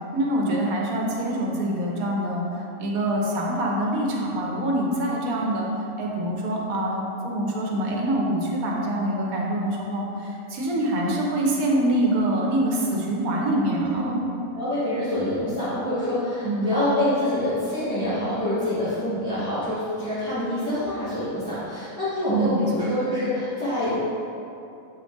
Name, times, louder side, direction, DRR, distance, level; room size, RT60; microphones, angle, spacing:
voice 1, 0.1-5.7 6.0-14.2 16.4-16.7 22.3-22.9, right 1 dB, 75° right, -2 dB, 1.3 m, -25 dB
voice 2, 13.8-14.1 14.5-24.0, left 1 dB, 10° left, -15 dB, 1.2 m, -26 dB
7.4 x 3.8 x 3.7 m, 2.8 s
omnidirectional pair, 1.5 m